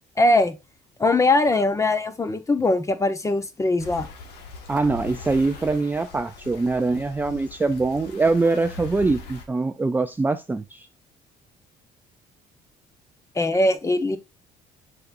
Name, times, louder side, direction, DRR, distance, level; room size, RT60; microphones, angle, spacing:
voice 1, 0.2-0.6 1.0-4.1 13.3-14.2, left 2 dB, 20° left, 1.0 m, -21 dB
sound 1, 3.8-9.5, left 4 dB, 80° left, 1.6 m, -40 dB
voice 2, 4.7-10.9, right 3 dB, 10° right, 0.4 m, -23 dB
6.9 x 5.4 x 2.6 m
cardioid pair, 110°, 17 cm